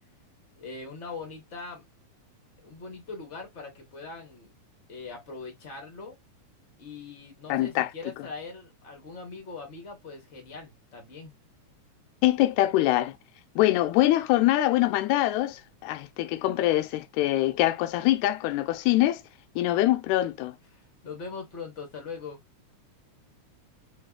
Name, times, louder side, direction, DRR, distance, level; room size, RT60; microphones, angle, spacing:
voice 1, 0.6-1.9 2.6-4.5 4.9-6.1 6.8-11.3 20.7-22.4, left 4 dB, 65° left, 0.7 m, -41 dB
voice 2, 7.5-7.9 12.2-13.1 13.6-19.2 19.6-20.6, left 15 dB, 85° left, 2.0 m, -24 dB
4.5 x 2.3 x 2.2 m
omnidirectional pair, 3.4 m